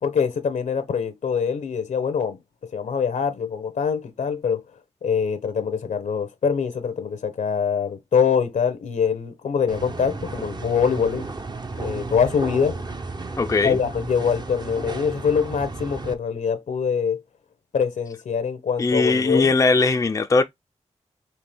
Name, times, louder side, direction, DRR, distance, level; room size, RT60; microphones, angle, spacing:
voice 1, 0.0-2.4 2.7-4.6 5.0-11.3 11.8-12.8 13.6-17.2 17.7-19.5, left 6 dB, 85° left, 0.7 m, -24 dB
sound 1, 9.7-16.1, right 3 dB, 35° right, 0.6 m, -33 dB
voice 2, 13.4-13.8 18.8-20.4, left 3 dB, 25° left, 0.4 m, -19 dB
4.3 x 2.9 x 3.4 m
wide cardioid pair, 75°, 12 cm